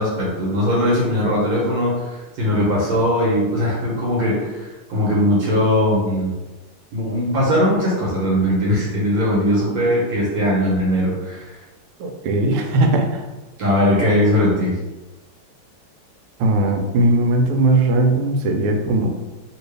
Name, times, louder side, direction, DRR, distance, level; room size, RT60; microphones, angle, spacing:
voice 1, 0.0-2.1 2.4-6.3 6.9-11.4 13.6-14.8, left 1 dB, 70° right, -5 dB, 1.5 m, -19 dB
voice 2, 12.0-13.2 16.4-19.1, right 2 dB, 85° right, 4 dB, 1.5 m, -18 dB
3.1 x 2.9 x 3.2 m, 1.1 s
omnidirectional pair, 2.4 m